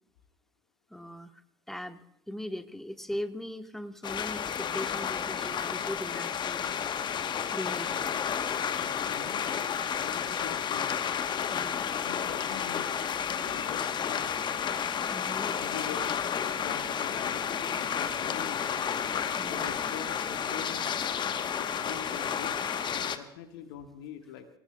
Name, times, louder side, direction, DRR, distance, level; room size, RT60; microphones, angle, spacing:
voice 1, 0.9-1.3 1.7-2.0 2.3-6.8 7.5-8.2 11.5-11.9 15.1-15.5 19.4-19.7, left 1 dB, ahead, 9 dB, 1.1 m, -39 dB
sound 1, 4.0-23.2, left 8 dB, 35° left, 1.0 m, -31 dB
voice 2, 8.8-9.6 10.0-11.0 11.9-13.0 13.3-14.2 15.6-16.2 16.6-18.7 19.5-20.9 21.6-22.6 22.9-24.5, left 8 dB, 65° left, 7 dB, 1.4 m, -44 dB
sound 2, 13.2-23.0, right 3 dB, 25° right, 4.2 m, -51 dB
25.0 x 18.5 x 2.2 m, 0.82 s
figure-of-eight pair, 65°, 13 cm